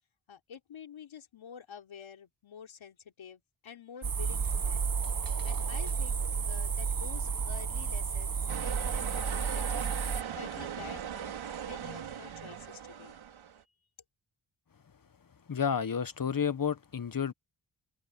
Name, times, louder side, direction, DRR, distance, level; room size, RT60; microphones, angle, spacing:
voice 1, 0.3-4.9 5.4-13.2 13.6-13.7, left 8 dB, 80° left, 3.7 m, -49 dB
sound 1, 4.0-10.2, right 6 dB, 45° right, 1.5 m, -32 dB
sound 2, 8.5-13.6, right 9 dB, 90° right, 4.9 m, -39 dB
voice 2, 15.5-17.3, left 7 dB, 45° left, 1.4 m, -31 dB
open air
cardioid pair, 50°, 47 cm